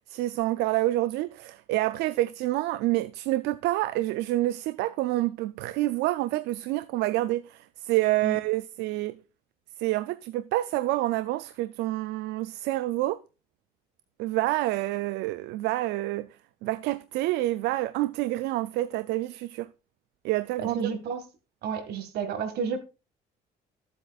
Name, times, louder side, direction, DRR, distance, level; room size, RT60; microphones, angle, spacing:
voice 1, 0.1-9.2 9.8-13.2 14.2-16.3 16.6-19.7 20.2-20.8, right 17 dB, 90° right, 0.4 m, -28 dB
voice 2, 20.6-21.3 21.6-22.8, right 6 dB, 75° right, 2.0 m, -31 dB
14.0 x 8.0 x 2.4 m
cardioid pair, 110°, 17 cm